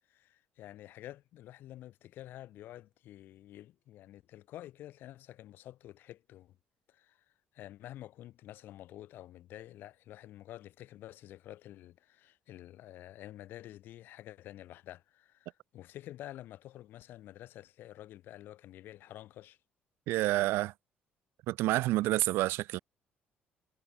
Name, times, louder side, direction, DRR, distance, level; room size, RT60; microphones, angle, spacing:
voice 1, 0.1-6.6 6.9-7.2 7.5-19.6, left 13 dB, 60° left, 0.6 m, -49 dB
voice 2, 20.1-20.7 21.5-22.8, right 17 dB, 85° right, 0.4 m, -28 dB
cardioid pair, 170°, 4 cm